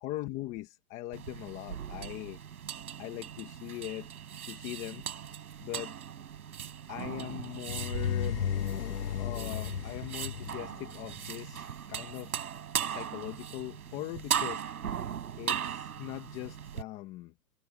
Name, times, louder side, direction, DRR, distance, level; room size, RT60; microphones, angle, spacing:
voice 1, 0.0-2.4 3.0-4.1 4.4-5.0 5.6-5.9 6.9-8.4 9.2-12.4 12.9-14.6 15.4-17.3, left 16 dB, 15° left, 1.3 m, -40 dB
sound 1, 1.1-16.8, right 8 dB, 70° right, 7.2 m, -38 dB
sound 2, 7.7-11.6, left 8 dB, 90° left, 1.4 m, -34 dB
hypercardioid pair, 165°, 46 cm